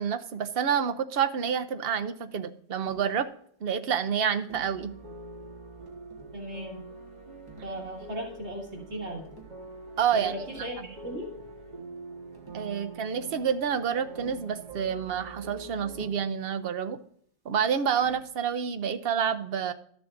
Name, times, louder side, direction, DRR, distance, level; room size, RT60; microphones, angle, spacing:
voice 1, 0.0-3.3 3.6-4.9 10.0-10.3 12.5-17.0 17.4-19.7, right 7 dB, 65° right, 9 dB, 0.8 m, -28 dB
Tap, 2.8-3.2 4.5-4.8 5.9-6.4 7.5-8.2 9.2-9.6 10.3-10.8 12.0-12.1 12.3-12.9 14.2-14.6 15.9-16.4 18.0-18.3, right 4 dB, 20° right, 1.4 m, -50 dB
sound 1, 4.6-16.1, right 2 dB, 40° right, 1.5 m, -45 dB
voice 2, 6.3-6.8 7.6-9.2 10.1-11.3, equal, 85° right, 0 dB, 2.3 m, -37 dB
12.5 x 6.9 x 2.5 m, 0.63 s
omnidirectional pair, 1.1 m